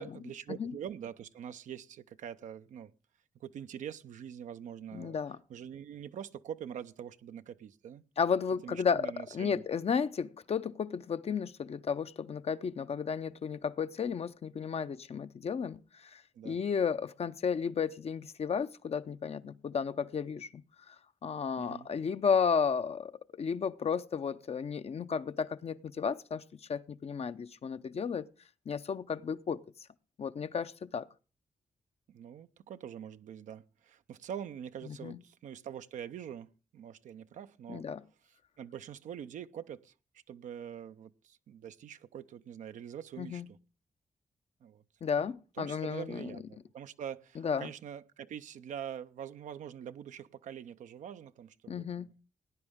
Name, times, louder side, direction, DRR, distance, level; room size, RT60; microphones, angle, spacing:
voice 1, 0.0-2.9 3.4-5.2 5.5-8.0 8.6-9.6 16.3-16.6 21.6-21.9 32.1-37.9 38.6-39.9 40.3-43.6 44.6-44.8 45.6-52.1, right 9 dB, 80° right, 0.5 m, -44 dB
voice 2, 4.9-5.4 8.2-20.6 20.9-21.0 21.2-26.4 26.7-28.3 28.7-29.6 30.2-31.1 35.0-35.2 37.7-38.0 43.2-43.5 45.0-46.4 47.4-47.7 51.7-52.1, left 6 dB, 55° left, 0.6 m, -33 dB
17.5 x 9.7 x 3.6 m
supercardioid pair, 50°, 13 cm